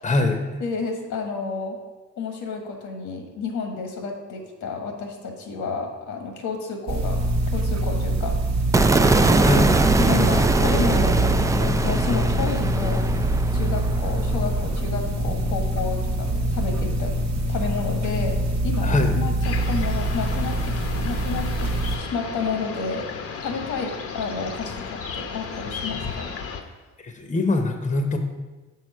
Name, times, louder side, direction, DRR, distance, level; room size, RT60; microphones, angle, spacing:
voice 1, 0.0-0.6 9.4-9.7 18.8-19.2 27.0-28.2, left 2 dB, 25° left, 5 dB, 0.8 m, -23 dB
voice 2, 0.6-1.8 2.2-8.4 9.0-9.6 10.0-13.1 13.5-17.1 17.5-23.0 23.4-26.3, left 4 dB, 85° left, 3 dB, 1.4 m, -31 dB
sound 1, 6.9-22.0, right 1 dB, 60° right, 0.9 m, -24 dB
sound 2, 8.7-15.0, right 3 dB, 10° right, 0.3 m, -22 dB
sound 3, 19.4-26.6, left 5 dB, 50° left, 0.8 m, -34 dB
6.4 x 4.1 x 5.5 m, 1.2 s
cardioid pair, 90°, 30 cm